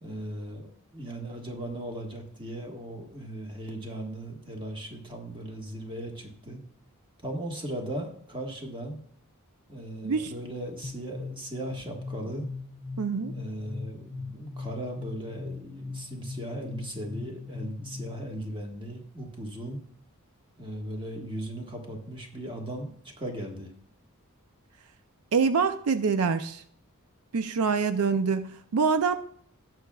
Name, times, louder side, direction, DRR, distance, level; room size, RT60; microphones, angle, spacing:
voice 1, 0.0-6.6 7.2-9.0 9.7-12.5 13.2-19.8 20.6-23.7, right 1 dB, 25° right, 1 dB, 1.5 m, -37 dB
sound 1, 10.8-18.4, left 4 dB, 25° left, 0.4 m, -40 dB
voice 2, 13.0-13.3 25.3-26.6 27.3-29.2, right 5 dB, 80° right, 10 dB, 0.5 m, -25 dB
18.0 x 6.1 x 2.3 m, 0.62 s
head